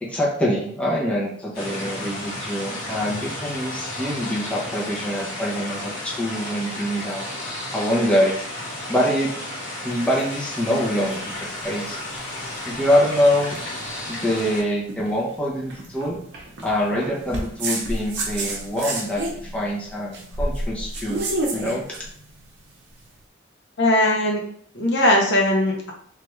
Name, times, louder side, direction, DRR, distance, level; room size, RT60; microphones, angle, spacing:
voice 1, 0.0-7.3 7.7-8.4 8.9-9.3 9.8-12.0 12.6-13.6 14.1-16.2 16.6-21.2 21.5-21.8, equal, 5° left, -5 dB, 0.6 m, -24 dB
sound 1, 1.5-14.6, left 1 dB, 85° left, 1.3 m, -33 dB
sound 2, 9.9-23.1, right 2 dB, 60° right, 0.7 m, -32 dB
voice 2, 23.8-24.4 24.7-25.9, left 1 dB, 60° left, -1 dB, 0.8 m, -19 dB
3.1 x 2.4 x 3.1 m, 0.63 s
head